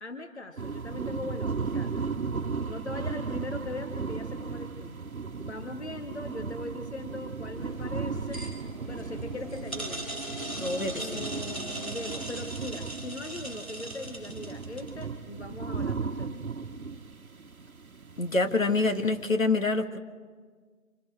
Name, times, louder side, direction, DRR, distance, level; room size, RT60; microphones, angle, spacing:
voice 1, 0.0-1.9 2.7-5.0 5.4-10.1 10.9-16.5, left 2 dB, 50° left, 6 dB, 1.1 m, -40 dB
sound 1, 0.6-19.3, right 5 dB, 85° right, 1.1 m, -36 dB
sound 2, 7.5-15.0, right 1 dB, 10° left, 2.4 m, -40 dB
sound 3, 8.1-12.5, right 1 dB, 35° right, 2.4 m, -42 dB
voice 2, 10.6-11.2 18.2-20.0, left 3 dB, 70° left, 7 dB, 1.8 m, -27 dB
26.5 x 26.5 x 4.6 m, 1.5 s
figure-of-eight pair, 180°, 41 cm